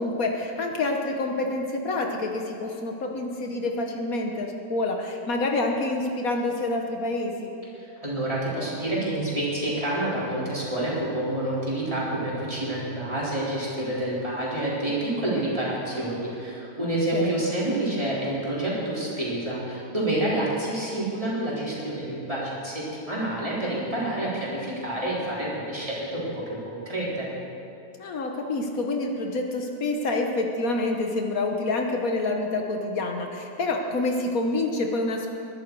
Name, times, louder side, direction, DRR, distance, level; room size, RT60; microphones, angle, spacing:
voice 1, 0.0-7.5 16.8-17.4 28.0-35.3, left 2 dB, 70° left, 2 dB, 1.6 m, -27 dB
voice 2, 7.8-27.3, right 1 dB, 20° right, -7 dB, 4.0 m, -28 dB
21.5 x 11.5 x 4.7 m, 2.8 s
omnidirectional pair, 1.6 m